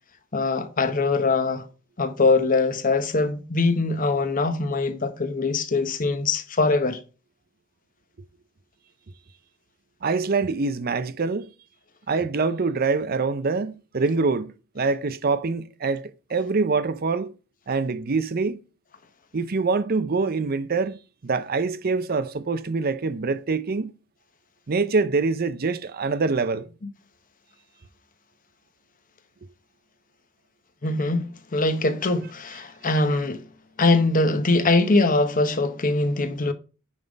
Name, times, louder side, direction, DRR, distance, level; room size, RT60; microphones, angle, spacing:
voice 1, 0.3-1.7 2.0-7.0 30.8-33.4 33.8-36.5, left 3 dB, 40° left, 0.9 m, -22 dB
voice 2, 10.0-11.5 12.1-17.3 17.7-18.6 19.3-23.9 24.7-26.7, right 4 dB, 45° right, 0.6 m, -25 dB
9.4 x 3.7 x 5.2 m
head